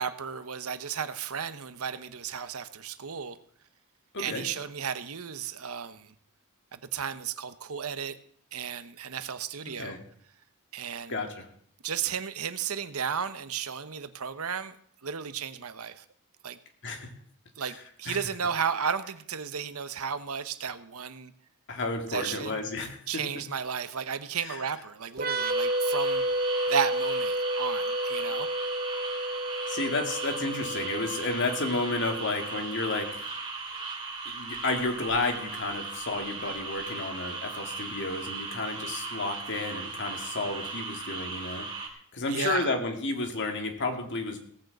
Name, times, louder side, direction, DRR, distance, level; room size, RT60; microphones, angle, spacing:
voice 1, 0.0-3.4 4.2-6.1 6.7-8.2 8.5-10.0 10.7-11.2 11.8-14.7 15.0-16.0 16.4-16.6 17.6-21.3 22.1-22.6 23.1-26.2 26.7-28.5 42.3-42.7, right 7 dB, 75° right, 12 dB, 0.9 m, -33 dB
voice 2, 4.1-4.5 9.8-10.0 11.1-11.5 16.8-17.1 17.6-17.7 18.1-18.2 21.7-23.2 24.4-24.6 29.7-33.3 34.3-41.7 42.1-44.4, left 3 dB, 55° left, 4 dB, 2.4 m, -31 dB
sound 1, 25.1-32.6, right 1 dB, 40° right, 1.0 m, -31 dB
sound 2, 25.4-41.9, right 4 dB, 25° right, 2.7 m, -37 dB
17.0 x 6.5 x 7.9 m, 0.62 s
head